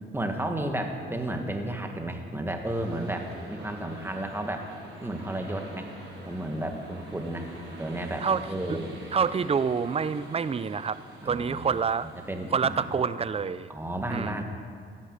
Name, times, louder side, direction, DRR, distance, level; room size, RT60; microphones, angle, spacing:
voice 1, 0.1-4.7 5.0-5.9 6.3-7.5 7.8-8.9 11.2-11.8 12.3-12.9 13.7-14.4, right 1 dB, 10° right, 4 dB, 2.0 m, -32 dB
sound 1, 2.6-13.7, right 2 dB, 75° right, 5.3 m, -46 dB
voice 2, 9.1-11.0 11.3-12.1 12.5-13.7 14.1-14.4, right 6 dB, 30° right, 15 dB, 0.6 m, -27 dB
16.0 x 12.0 x 6.7 m, 2.1 s
cardioid pair, 90°, 20 cm